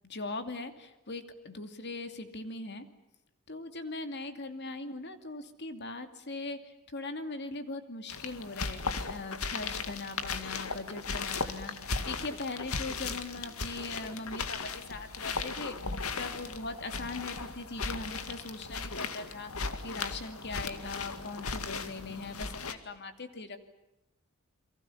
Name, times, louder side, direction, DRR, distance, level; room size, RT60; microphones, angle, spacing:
voice 1, 0.0-2.9 3.5-8.8 9.1-15.8 16.2-19.5 19.8-23.6, left 3 dB, 50° left, 8 dB, 2.6 m, -40 dB
sound 1, 8.1-22.7, left 4 dB, 85° left, 2.2 m, -37 dB
29.5 x 23.5 x 7.2 m, 0.92 s
head